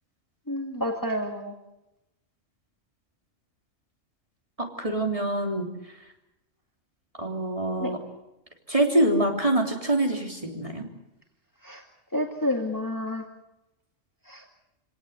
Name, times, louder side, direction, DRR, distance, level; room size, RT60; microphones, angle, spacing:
voice 1, 0.5-1.5 7.8-7.9 11.6-11.8 12.1-13.2 14.3-14.4, left 1 dB, 15° left, 2 dB, 2.2 m, -29 dB
voice 2, 4.6-5.7 7.2-8.0 8.7-10.9, right 1 dB, 25° right, 1 dB, 3.3 m, -25 dB
26.5 x 18.0 x 8.2 m, 0.92 s
omnidirectional pair, 1.3 m